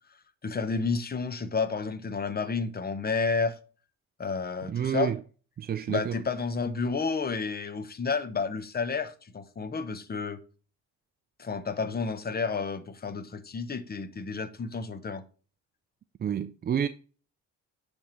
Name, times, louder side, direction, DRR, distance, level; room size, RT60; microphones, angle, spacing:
voice 1, 0.4-3.6 4.2-5.1 5.9-10.4 11.4-15.2, left 4 dB, 30° left, 0.9 m, -31 dB
voice 2, 4.7-5.2 5.6-6.2 16.2-16.9, right 9 dB, 35° right, 0.4 m, -29 dB
10.0 x 3.5 x 4.4 m
cardioid pair, 90°, 30 cm